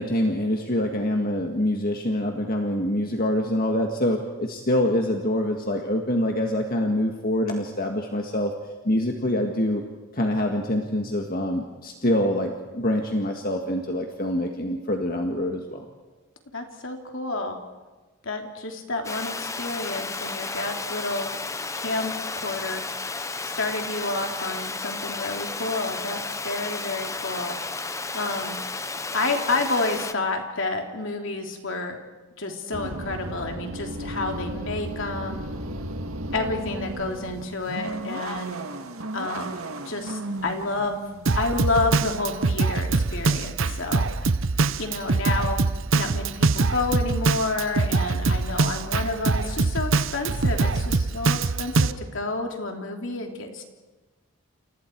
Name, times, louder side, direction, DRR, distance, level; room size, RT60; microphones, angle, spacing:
voice 1, 0.0-8.5 8.8-9.8 10.1-15.9, left 1 dB, 45° left, 3 dB, 1.8 m, -25 dB
voice 2, 16.5-17.6 18.2-21.3 21.8-22.8 23.4-27.6 28.1-28.6 29.1-32.0 32.4-35.5 36.3-38.6 39.1-39.5 39.8-41.0 41.3-44.1 44.8-45.6 46.0-53.6, left 3 dB, 60° left, 3 dB, 3.2 m, -29 dB
Water, 19.0-30.1, left 3 dB, 15° left, 0.8 m, -33 dB
sound 1, 32.7-42.5, right 1 dB, 75° right, 1.9 m, -35 dB
Drum kit, 41.3-51.9, right 3 dB, 60° right, 0.8 m, -23 dB
29.5 x 28.0 x 4.7 m, 1.2 s
head